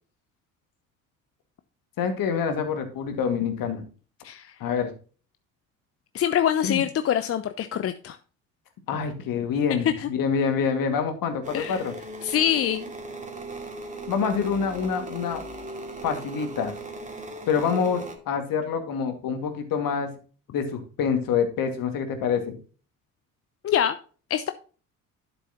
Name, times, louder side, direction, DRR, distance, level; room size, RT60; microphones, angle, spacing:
voice 1, 2.0-3.8 4.6-4.9 6.6-6.8 8.9-11.9 14.1-15.4 16.0-16.7 17.5-20.1 20.5-22.6, left 6 dB, 50° left, 6 dB, 2.2 m, -26 dB
voice 2, 6.1-8.2 10.0-10.1 11.5-11.8 12.2-12.9 23.6-24.0 24.3-24.5, left 10 dB, 35° left, 11 dB, 0.7 m, -25 dB
sound 1, 11.4-18.2, right 2 dB, 20° right, 2.5 m, -38 dB
12.0 x 6.9 x 3.0 m, 0.38 s
figure-of-eight pair, 55°, 42 cm